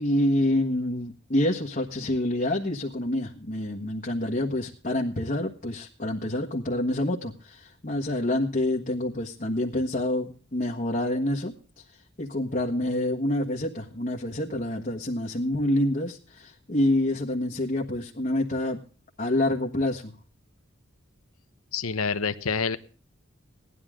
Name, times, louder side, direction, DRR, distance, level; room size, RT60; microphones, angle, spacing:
voice 1, 0.0-11.8 12.2-18.8 19.2-20.1, left 1 dB, 40° left, 0 dB, 1.5 m, -27 dB
voice 2, 21.7-22.8, left 5 dB, 90° left, 11 dB, 1.1 m, -27 dB
18.0 x 11.5 x 3.7 m, 0.41 s
head